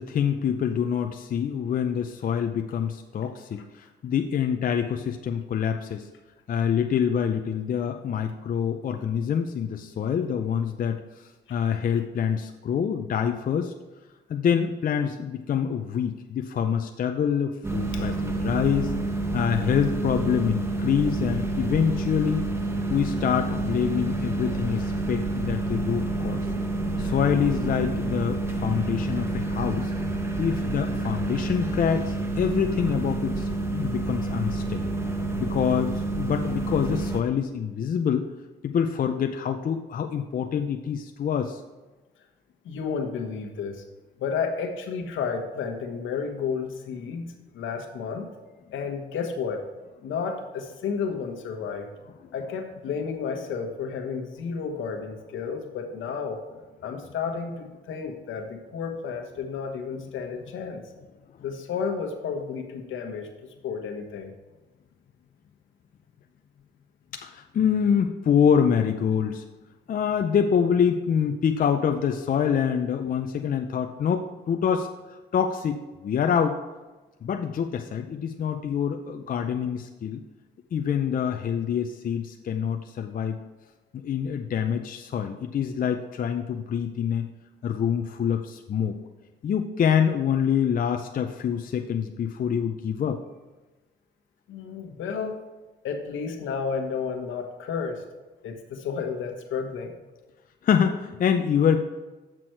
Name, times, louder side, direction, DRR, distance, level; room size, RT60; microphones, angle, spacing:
voice 1, 0.0-6.1 6.5-13.7 14.3-18.9 19.3-22.4 22.9-26.4 27.0-29.9 30.4-34.8 35.4-38.3 38.6-41.6 67.1-69.4 69.9-74.9 75.3-76.6 77.2-80.2 80.7-83.4 83.9-87.3 87.6-89.0 89.4-93.2 100.6-101.8, left 7 dB, 45° left, 5 dB, 0.5 m, -26 dB
sound 1, 17.6-37.2, right 2 dB, 15° right, 1.0 m, -28 dB
voice 2, 42.6-43.8 44.2-48.3 48.7-49.6 50.0-51.9 52.3-56.4 56.8-60.8 61.4-64.3 94.5-95.4 95.8-98.0 98.4-99.9, left 5 dB, 75° left, 3 dB, 1.3 m, -32 dB
7.8 x 6.0 x 4.6 m, 1.2 s
cardioid pair, 90°, 20 cm